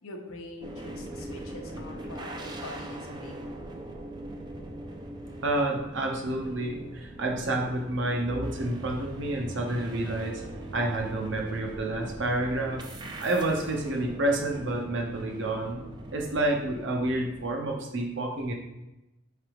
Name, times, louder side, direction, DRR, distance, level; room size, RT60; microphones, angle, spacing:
voice 1, 0.0-3.4, left 2 dB, 85° left, 3 dB, 0.7 m, -43 dB
sound 1, 0.6-17.5, right 1 dB, 20° right, 0.3 m, -42 dB
sound 2, 1.6-16.6, equal, 35° left, 0.7 m, -51 dB
voice 2, 5.4-10.4 10.7-12.8 13.2-15.8 16.1-18.5, right 1 dB, 60° right, 1 dB, 0.7 m, -29 dB
4.9 x 3.3 x 3.0 m, 0.96 s
head